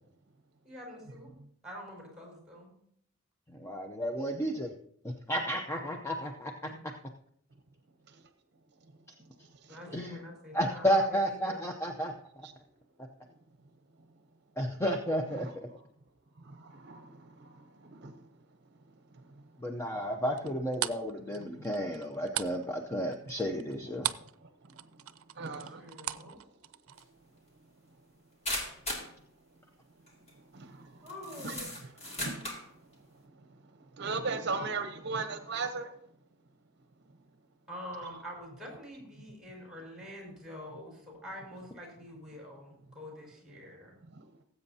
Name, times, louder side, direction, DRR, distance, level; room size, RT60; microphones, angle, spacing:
voice 1, 0.6-1.3 1.6-2.7 6.6-6.8 9.7-11.6 25.8-26.4 31.0-31.5 37.7-44.0, equal, 5° right, 4.6 m, -46 dB
voice 2, 3.5-4.7 5.3-6.5 9.9-10.2 10.5-12.1 14.6-15.5 19.6-24.1, equal, 15° left, 0.6 m, -32 dB
voice 3, 8.9-9.9 12.4-12.5 13.2-13.4 15.3-15.8 16.3-18.4 18.7-19.9 21.5-22.3 23.8-26.5 27.4-28.1 28.9-29.0 30.0-31.1 31.4-36.1 37.1-37.3 43.6-43.7 44.0-44.3, right 4 dB, 55° right, 0.7 m, -42 dB
sound 1, 20.4-24.4 24.6-27.0, right 13 dB, 90° right, 0.5 m, -37 dB
sound 2, 27.0-27.1 28.4-29.1 30.1-30.3 31.1-32.7, left 1 dB, 30° left, 2.3 m, -37 dB
19.0 x 8.1 x 2.8 m
head